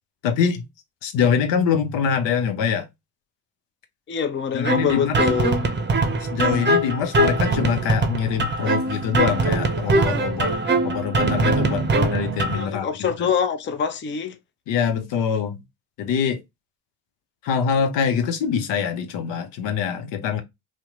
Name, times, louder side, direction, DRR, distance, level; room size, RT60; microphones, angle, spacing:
voice 1, 0.2-0.7 1.0-2.8 4.5-5.2 6.3-10.5 10.8-12.9 13.2-13.3 14.7-15.6 16.0-16.4 17.4-20.4, left 7 dB, 70° left, 0.8 m, -24 dB
voice 2, 4.1-5.6 12.5-14.4, left 7 dB, 25° left, 0.5 m, -25 dB
sound 1, 4.6-12.6, right 2 dB, 25° right, 0.7 m, -22 dB
2.8 x 2.1 x 3.5 m
hypercardioid pair, 50°, 45 cm